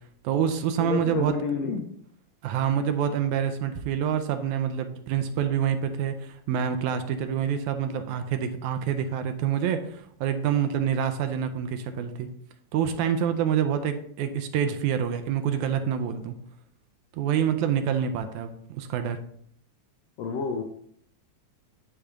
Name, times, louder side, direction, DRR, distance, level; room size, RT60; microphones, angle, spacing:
voice 1, 0.2-1.3 2.4-12.3 12.7-16.4 17.1-19.2, right 8 dB, 80° right, 7 dB, 1.9 m, -27 dB
voice 2, 0.8-1.9 20.2-20.6, left 5 dB, 80° left, 3 dB, 1.5 m, -29 dB
9.9 x 3.3 x 3.6 m, 0.66 s
omnidirectional pair, 3.5 m